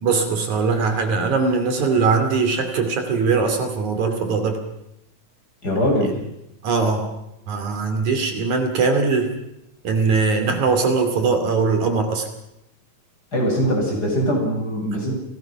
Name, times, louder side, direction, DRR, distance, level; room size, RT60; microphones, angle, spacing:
voice 1, 0.0-4.6 6.6-7.1 7.5-9.3 9.8-12.2, right 4 dB, 70° right, 6 dB, 3.9 m, -21 dB
voice 2, 5.6-6.2 13.3-15.1, equal, 30° left, -1 dB, 8.2 m, -21 dB
29.0 x 19.0 x 5.8 m, 0.85 s
omnidirectional pair, 3.6 m